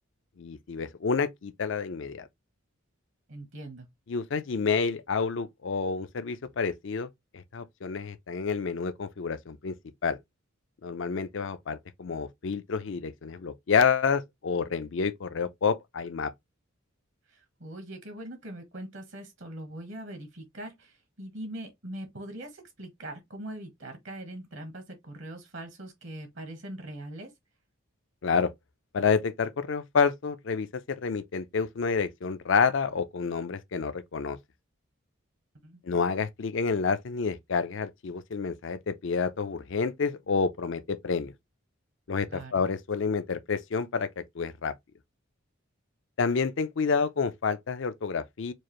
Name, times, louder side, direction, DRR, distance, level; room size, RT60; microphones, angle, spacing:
voice 1, 0.4-2.3 4.1-7.1 7.3-9.8 10.0-10.2 10.8-16.3 28.2-28.5 28.9-34.4 35.8-41.3 42.1-44.7 46.2-48.5, left 5 dB, 60° left, 0.5 m, -29 dB
voice 2, 3.3-3.9 17.3-27.3 35.6-35.8 42.3-42.6, right 1 dB, 60° right, 1.1 m, -42 dB
4.6 x 2.4 x 3.0 m
head